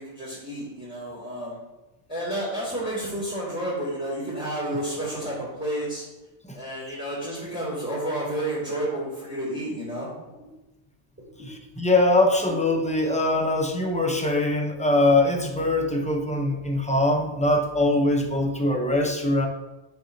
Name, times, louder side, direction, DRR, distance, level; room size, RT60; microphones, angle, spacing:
voice 1, 0.0-1.6 2.1-6.0 6.5-10.1, right 1 dB, 15° right, -12 dB, 2.8 m, -30 dB
voice 2, 11.4-19.5, left 2 dB, 5° left, 2 dB, 0.7 m, -22 dB
9.1 x 6.1 x 2.8 m, 1.0 s
omnidirectional pair, 1.2 m